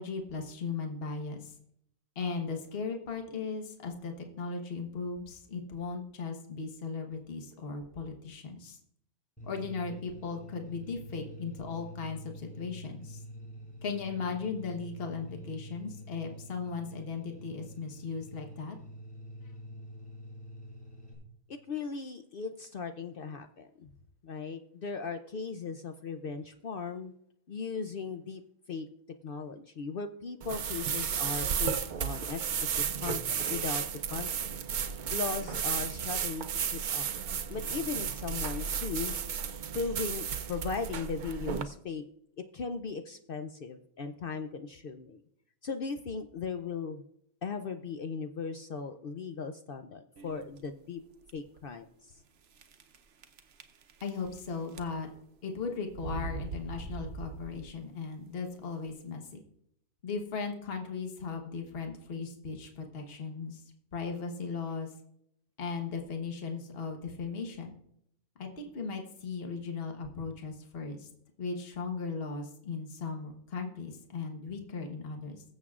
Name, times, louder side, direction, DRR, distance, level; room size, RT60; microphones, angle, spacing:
voice 1, 0.0-1.5 2.1-8.8 9.4-13.2 13.8-18.8 54.0-55.1 55.4-59.4 60.0-63.6 63.9-64.9 65.6-67.8 68.4-71.1 71.4-75.4, left 5 dB, 45° left, 3 dB, 1.3 m, -37 dB
sound 1, 9.4-21.1, equal, 5° left, 4.6 m, -47 dB
voice 2, 21.5-23.9 24.2-27.1 27.5-28.4 28.7-28.9 29.2-33.8 34.1-34.5 35.1-36.4 36.7-37.1 37.5-39.2 39.7-42.0 42.4-45.2 45.6-47.0 47.4-51.0 51.3-52.1, left 5 dB, 65° left, 7 dB, 0.5 m, -38 dB
sound 2, 30.4-41.6, right 7 dB, 70° right, 0.4 m, -33 dB
sound 3, 50.2-50.6 51.2-51.3 51.6-51.7 52.6-53.0 53.2-54.4 54.7-55.2 55.9-57.8, right 3 dB, 55° right, 0.9 m, -41 dB
21.5 x 7.4 x 2.4 m, 0.74 s
omnidirectional pair, 1.5 m